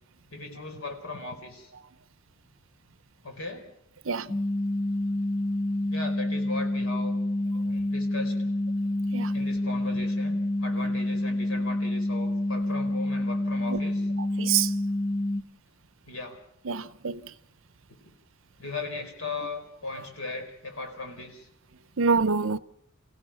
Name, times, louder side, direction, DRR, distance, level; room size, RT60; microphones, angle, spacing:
voice 1, 0.3-1.7 3.2-3.6 4.3-4.4 5.8-7.2 7.6-8.5 9.3-14.1 16.1-16.4 18.6-21.5, left 3 dB, 70° left, 4.5 m, -38 dB
sound 1, 4.3-15.4, left 1 dB, 25° left, 1.7 m, -28 dB
voice 2, 14.4-14.7 16.7-17.2 22.0-22.6, right 5 dB, 65° right, 0.7 m, -25 dB
29.0 x 16.5 x 5.8 m
head